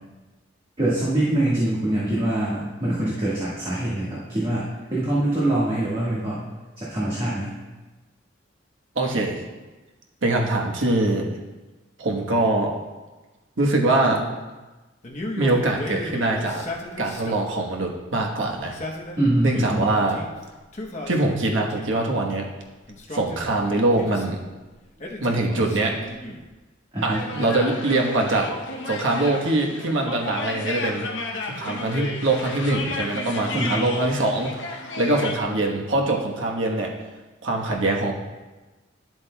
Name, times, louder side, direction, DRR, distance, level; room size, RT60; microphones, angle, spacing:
voice 1, 0.8-6.4 6.8-7.5 14.1-14.2 19.2-19.8 26.9-27.3 33.5-33.9, right 1 dB, 30° right, -9 dB, 1.6 m, -24 dB
voice 2, 8.9-9.4 10.2-11.4 12.0-12.7 13.6-14.2 15.4-16.6 17.0-18.8 19.4-20.2 21.1-22.5 23.1-24.4 25.2-26.0 27.0-28.5 28.9-31.1 31.5-34.5 35.0-36.9 37.4-38.1, right 2 dB, 85° right, 0 dB, 1.2 m, -23 dB
Male speech man speaking, 15.0-17.6 18.6-20.3 20.7-22.0 22.9-24.4 25.0-26.5, left 2 dB, 40° left, 0.9 m, -36 dB
sound 1, 27.1-35.4, left 3 dB, 75° left, 0.8 m, -33 dB
11.0 x 7.7 x 2.3 m, 1.2 s
head